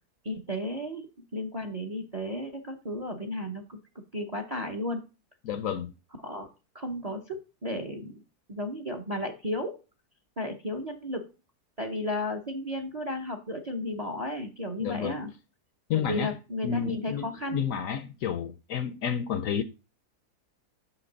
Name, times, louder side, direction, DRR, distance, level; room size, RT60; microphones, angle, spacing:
voice 1, 0.2-1.1 1.3-3.8 4.1-5.0 6.2-6.5 6.7-8.2 8.5-9.7 10.4-11.2 11.8-15.3 16.0-17.6, left 1 dB, 40° right, 0.6 m, -33 dB
voice 2, 5.4-5.9 14.8-15.2 15.9-16.3 16.6-17.3 17.5-19.6, left 8 dB, 70° left, 0.8 m, -30 dB
6.2 x 5.8 x 3.9 m
omnidirectional pair, 1.7 m